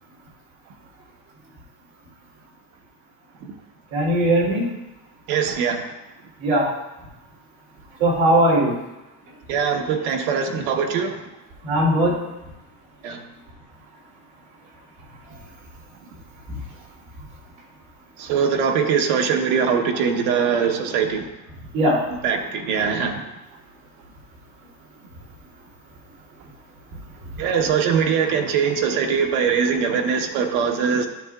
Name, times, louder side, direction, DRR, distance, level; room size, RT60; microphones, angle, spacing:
voice 1, 3.9-4.6 6.4-6.7 8.0-8.7 11.6-12.2 21.7-22.0, right 1 dB, 55° right, -3 dB, 3.1 m, -18 dB
voice 2, 5.3-5.9 9.5-11.1 13.0-13.2 18.2-21.3 22.2-23.2 27.4-31.1, right 6 dB, 85° right, 3 dB, 1.3 m, -22 dB
12.0 x 7.4 x 2.4 m, 0.96 s
cardioid pair, 180°, 43 cm